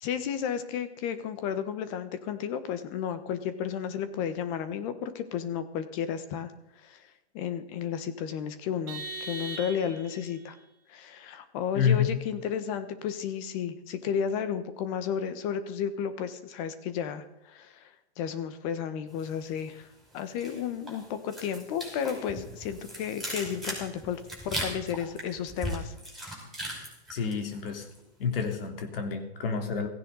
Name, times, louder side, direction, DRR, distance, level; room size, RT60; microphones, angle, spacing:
voice 1, 0.0-6.5 6.8-10.6 10.9-19.9 20.1-25.9, left 8 dB, 30° left, 11 dB, 1.4 m, -33 dB
Vehicle horn car horn honking, 8.9-10.3, right 3 dB, 30° right, 2.1 m, -39 dB
voice 2, 11.7-12.1 27.1-27.9 28.2-29.9, left 7 dB, 60° left, 4 dB, 3.1 m, -28 dB
sound 1, 19.2-19.8 20.1-28.0 28.3-28.6, equal, ahead, 5.3 m, -39 dB
16.5 x 16.0 x 4.1 m, 0.88 s
hypercardioid pair, 150°, 33 cm